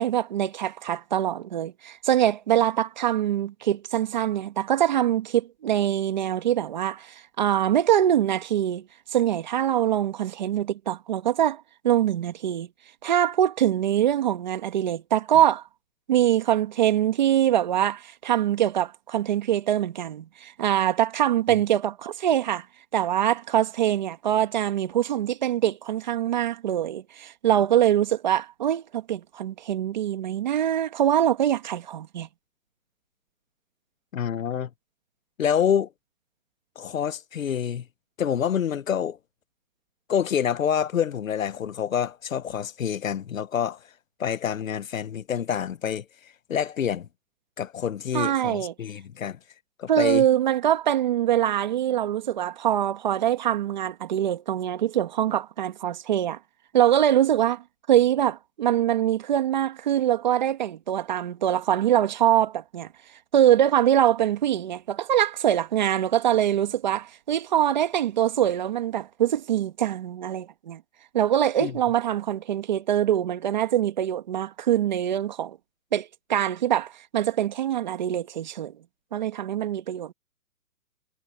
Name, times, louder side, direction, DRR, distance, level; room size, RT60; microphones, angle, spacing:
voice 1, 0.0-12.7 13.0-15.6 16.1-22.7 22.9-32.3 48.1-48.7 49.9-56.4 56.7-57.6 57.9-62.9 63.3-70.8 71.1-75.6 75.9-78.7 79.1-80.1, right 11 dB, 25° right, 1.7 m, -23 dB
voice 2, 34.1-34.7 35.4-35.9 36.8-37.8 38.2-39.2 40.1-43.8 44.2-46.0 46.5-47.1 47.6-49.4 49.8-50.2 71.6-71.7, left 8 dB, 55° left, 1.1 m, -27 dB
hypercardioid pair, 170°, 49 cm